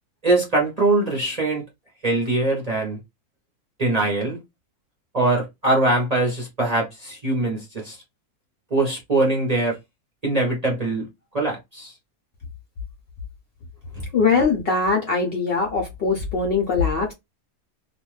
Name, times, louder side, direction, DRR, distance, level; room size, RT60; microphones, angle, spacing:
voice 1, 0.2-1.6 2.0-3.0 3.8-4.4 5.1-8.0 8.7-9.8 10.2-11.1 11.3-11.9, right 2 dB, 35° right, 0.7 m, -22 dB
voice 2, 14.1-17.1, left 4 dB, 55° left, 0.7 m, -21 dB
2.5 x 2.3 x 3.1 m
omnidirectional pair, 1.6 m